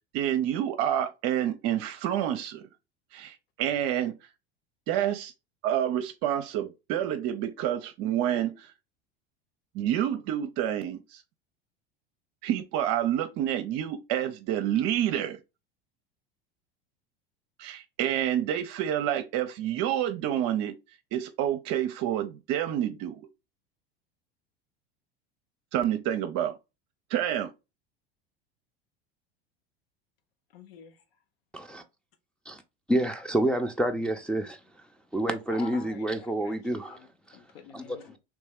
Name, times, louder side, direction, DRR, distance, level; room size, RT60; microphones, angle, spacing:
voice 1, 0.1-2.7 3.1-4.1 4.9-5.3 5.6-8.7 9.7-11.2 12.4-15.4 17.6-20.8 21.1-23.3 25.7-26.6 27.1-27.5, right 11 dB, 55° right, 0.6 m, -28 dB
voice 2, 30.5-31.0 35.5-38.2, left 6 dB, 75° left, 0.7 m, -48 dB
voice 3, 32.9-34.6 35.1-37.0 37.7-38.0, right 1 dB, 5° left, 0.5 m, -28 dB
3.1 x 3.1 x 3.4 m
hypercardioid pair, 85°, 30 cm